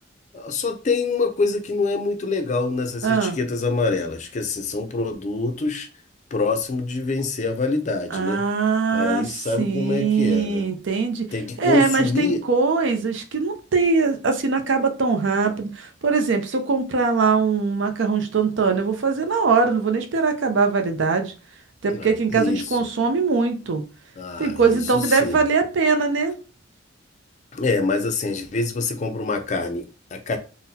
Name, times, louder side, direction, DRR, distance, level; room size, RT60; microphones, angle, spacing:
voice 1, 0.3-5.9 6.3-8.4 8.9-10.7 11.3-12.5 21.9-22.8 24.2-25.4 27.5-30.4, left 3 dB, 35° left, 0.4 m, -25 dB
voice 2, 3.0-3.4 8.1-9.2 9.6-11.2 11.6-21.3 21.8-23.8 24.4-26.3, right 4 dB, 65° right, 0.5 m, -21 dB
3.8 x 2.1 x 2.7 m
head